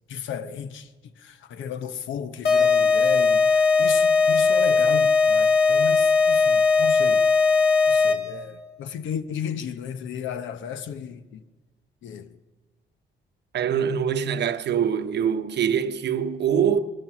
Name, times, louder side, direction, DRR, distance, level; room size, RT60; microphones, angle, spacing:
voice 1, 0.1-0.9 1.2-7.2 7.9-11.2 12.0-12.3, left 8 dB, 75° left, 0.9 m, -34 dB
sound 1, 2.4-8.4, left 4 dB, 55° left, 1.6 m, -19 dB
voice 2, 13.5-16.8, right 8 dB, 60° right, 0.8 m, -24 dB
19.0 x 12.0 x 6.1 m
cardioid pair, 90°, 20 cm